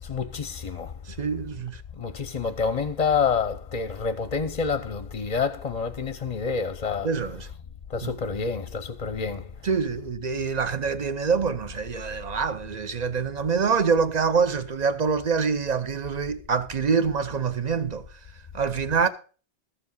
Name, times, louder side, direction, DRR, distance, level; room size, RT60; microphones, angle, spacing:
voice 1, 0.0-0.9 1.9-7.1 7.9-9.5, left 5 dB, 40° left, 0.7 m, -28 dB
voice 2, 1.1-1.8 7.0-7.5 8.0-8.1 9.6-18.0 18.5-19.1, right 5 dB, 45° right, 0.8 m, -25 dB
13.5 x 7.1 x 5.4 m
omnidirectional pair, 1.1 m